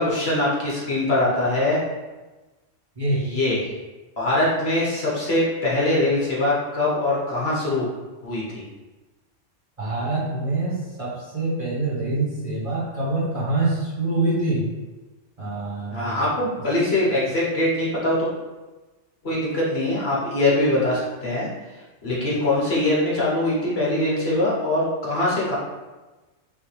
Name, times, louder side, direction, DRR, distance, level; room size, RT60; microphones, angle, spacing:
voice 1, 0.0-1.8 3.1-3.6 4.2-7.9 8.2-8.6 15.9-18.3 19.2-21.5 22.0-25.6, left 1 dB, 55° left, -6 dB, 1.4 m, -22 dB
voice 2, 9.8-14.6 15.4-16.2, right 2 dB, 25° right, -9 dB, 1.4 m, -25 dB
5.5 x 2.8 x 3.3 m, 1.2 s
omnidirectional pair, 1.3 m